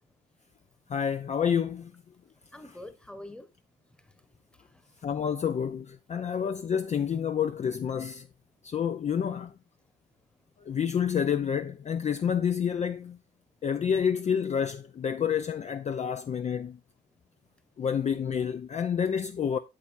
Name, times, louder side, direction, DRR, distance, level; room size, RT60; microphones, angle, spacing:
voice 1, 0.9-1.9 5.0-8.3 8.6-9.5 10.7-13.2 13.6-16.8 17.8-19.6, left 7 dB, 35° left, 0.4 m, -28 dB
voice 2, 2.5-3.5 3.9-5.0, left 1 dB, 5° left, 1.1 m, -47 dB
8.5 x 7.1 x 2.5 m
cardioid pair, 90°, 20 cm